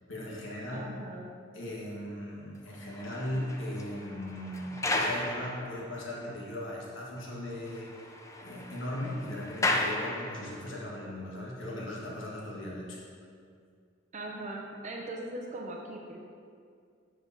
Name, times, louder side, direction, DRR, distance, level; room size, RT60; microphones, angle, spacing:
voice 1, 0.1-0.9 1.5-7.9 8.4-13.0, left 1 dB, 85° left, -4 dB, 1.5 m, -38 dB
voice 2, 0.7-1.3 14.1-16.2, right 1 dB, 40° right, 0 dB, 0.6 m, -40 dB
sound 1, 2.7-6.2 6.7-6.8 7.2-7.3 7.5-10.8, left 2 dB, 15° left, 0.5 m, -35 dB
7.8 x 4.7 x 4.1 m, 2.2 s
head